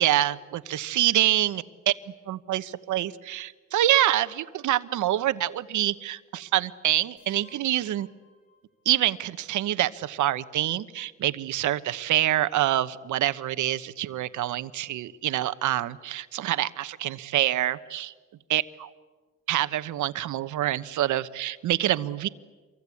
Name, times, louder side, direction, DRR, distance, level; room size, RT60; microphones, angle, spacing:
voice 1, 0.0-1.9 2.3-8.1 8.8-18.1 18.5-18.6 19.5-22.3, right 13 dB, 75° right, 12 dB, 1.1 m, -26 dB
sound 1, 7.2-9.1, left 4 dB, 85° left, 6.9 m, -59 dB
27.5 x 24.0 x 8.5 m, 1.4 s
cardioid pair, 90°, 30 cm